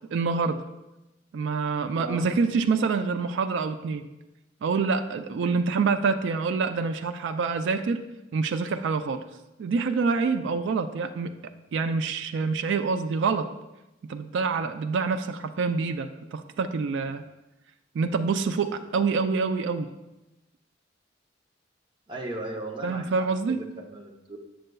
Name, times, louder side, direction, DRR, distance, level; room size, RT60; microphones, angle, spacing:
voice 1, 0.1-0.6 1.3-4.1 4.6-8.0 8.3-9.2 9.6-11.4 11.7-13.5 14.1-17.2 17.9-19.9 22.8-23.6, right 4 dB, 65° right, 8 dB, 0.3 m, -26 dB
voice 2, 1.9-2.3 22.1-24.4, right 1 dB, 25° right, 0 dB, 0.7 m, -37 dB
7.7 x 6.4 x 2.3 m, 0.99 s
head